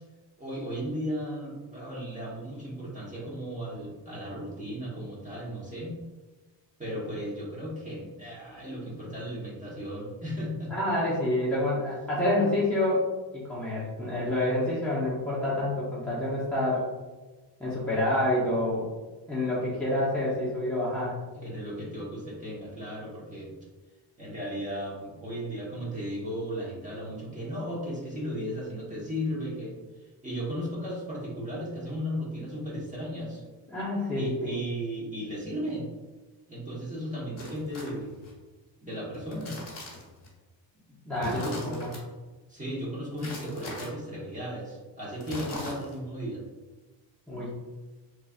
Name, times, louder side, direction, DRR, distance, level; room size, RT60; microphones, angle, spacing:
voice 1, 0.4-5.9 6.8-10.7 21.3-23.5 24.2-29.8 30.2-33.4 34.1-35.9 36.5-38.3 38.8-39.5 41.2-41.7 42.5-46.4, equal, 15° right, -6 dB, 1.1 m, -35 dB
voice 2, 10.7-13.0 13.3-16.9 17.6-18.8 19.3-21.1 33.7-34.6 41.0-41.9 47.3-47.6, left 1 dB, 5° left, -10 dB, 0.8 m, -28 dB
sound 1, 37.4-38.3 39.1-40.3 41.2-42.0 43.2-43.9 45.2-46.1, left 1 dB, 35° left, 1.3 m, -40 dB
4.0 x 3.1 x 2.4 m, 1.2 s
wide cardioid pair, 145°, 44 cm